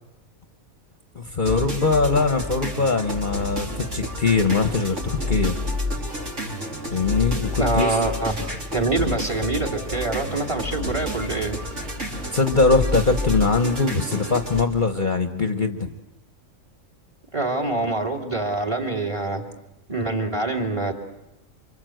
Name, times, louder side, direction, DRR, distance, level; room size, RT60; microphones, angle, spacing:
voice 1, 1.1-5.6 6.9-8.0 9.0-9.1 12.1-15.9, left 4 dB, 40° left, 6 dB, 1.2 m, -22 dB
sound 1, 1.4-14.6, left 2 dB, 65° right, 4.2 m, -29 dB
voice 2, 7.6-8.3 8.7-11.6 17.3-19.4 19.9-20.9, right 2 dB, 25° right, 3 dB, 3.0 m, -25 dB
29.0 x 25.0 x 7.8 m, 0.91 s
omnidirectional pair, 1.4 m